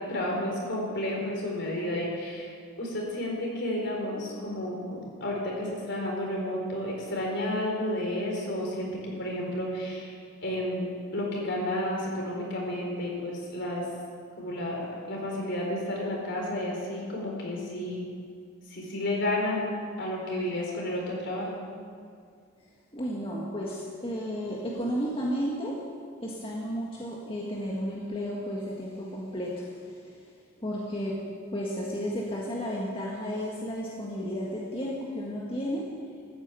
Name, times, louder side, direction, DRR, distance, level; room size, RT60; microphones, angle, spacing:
voice 1, 0.0-2.5 2.8-8.9 9.2-10.2 10.4-13.8 14.4-18.1 18.7-19.6 20.0-21.5, left 1 dB, 60° left, -1 dB, 4.3 m, -31 dB
voice 2, 22.9-25.9 26.2-30.3 30.6-36.0, equal, 25° left, -4 dB, 1.7 m, -33 dB
14.0 x 9.8 x 8.3 m, 2.1 s
head